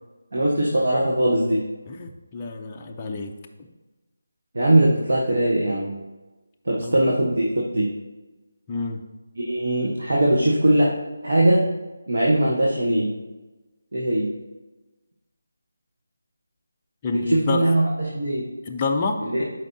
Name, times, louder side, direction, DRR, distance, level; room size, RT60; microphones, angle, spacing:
voice 1, 0.3-1.7 4.5-6.0 6.6-7.9 9.4-10.9 11.2-11.7 12.1-13.1 13.9-14.3 17.1-18.5 19.2-19.4, right 1 dB, 70° right, -3 dB, 1.3 m, -20 dB
voice 2, 1.9-3.3 3.6-3.7 6.7-7.0 8.7-9.0 17.0-17.6 18.7-19.2, left 4 dB, 15° left, 1 dB, 0.5 m, -28 dB
11.0 x 5.3 x 2.8 m, 1.1 s
figure-of-eight pair, 175°, 0 cm